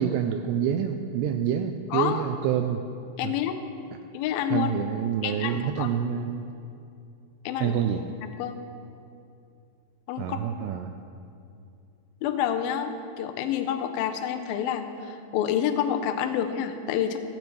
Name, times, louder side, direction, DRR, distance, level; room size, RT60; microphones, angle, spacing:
voice 1, 0.0-2.8 3.2-3.3 4.5-6.5 7.6-8.0 10.2-10.9, right 8 dB, 85° right, 6 dB, 2.5 m, -27 dB
voice 2, 1.9-2.2 3.2-3.6 4.1-4.7 5.2-5.9 7.5-7.8 8.2-8.6 10.1-10.7 12.2-17.2, left 9 dB, 80° left, 7 dB, 2.1 m, -28 dB
15.5 x 14.0 x 3.2 m, 2.6 s
omnidirectional pair, 5.0 m